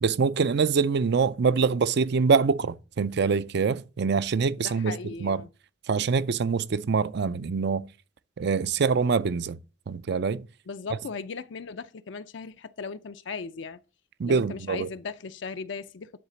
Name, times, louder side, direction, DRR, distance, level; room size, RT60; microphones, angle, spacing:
voice 1, 0.0-5.0 5.2-5.4 5.9-7.9 8.4-9.6 9.9-10.5 14.2-14.9, right 5 dB, 60° right, 0.5 m, -24 dB
voice 2, 4.6-5.5 10.7-13.8 14.2-16.1, left 5 dB, 65° left, 0.5 m, -37 dB
10.0 x 4.1 x 6.9 m
head